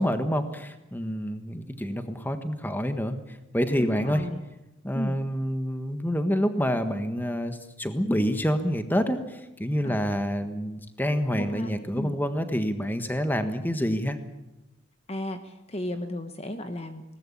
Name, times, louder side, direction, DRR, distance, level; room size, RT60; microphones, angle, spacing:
voice 1, 0.0-4.2 4.8-14.2, equal, 10° left, 8 dB, 1.4 m, -27 dB
voice 2, 3.8-4.4 4.9-5.1 9.8-10.0 11.3-12.2 15.1-17.0, left 1 dB, 30° left, 8 dB, 1.2 m, -34 dB
21.0 x 18.5 x 8.6 m, 0.96 s
head